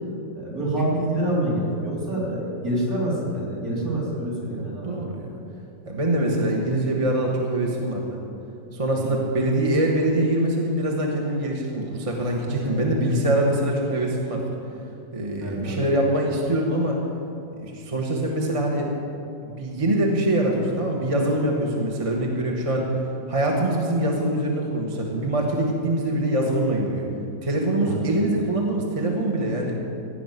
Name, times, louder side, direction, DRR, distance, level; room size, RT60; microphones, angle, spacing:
voice 1, 0.3-4.9 9.0-9.1 12.5-13.1 15.4-15.8 27.9-28.0, right 1 dB, 45° right, -7 dB, 4.3 m, -27 dB
voice 2, 4.4-5.3 5.8-8.2 8.7-14.5 15.1-17.0 17.6-18.9 19.4-22.9 23.3-27.1 27.4-29.8, right 1 dB, 20° right, -1 dB, 1.1 m, -24 dB
16.0 x 5.9 x 9.4 m, 2.7 s
omnidirectional pair, 2.0 m